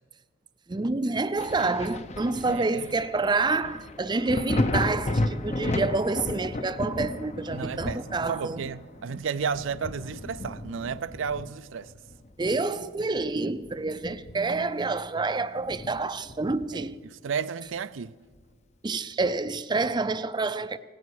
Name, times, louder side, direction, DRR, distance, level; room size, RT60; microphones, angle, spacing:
voice 1, 0.7-8.6 9.1-9.2 12.4-17.0 18.8-20.8, right 3 dB, 25° right, 0.5 m, -28 dB
Thunder, 1.4-12.7 13.1-14.6 15.0-15.1 15.7-16.9 18.4-18.5, left 1 dB, 35° left, 0.7 m, -33 dB
voice 2, 2.4-2.9 7.5-11.9 16.7-18.1, right 6 dB, 80° right, 0.5 m, -33 dB
18.0 x 17.0 x 4.7 m
head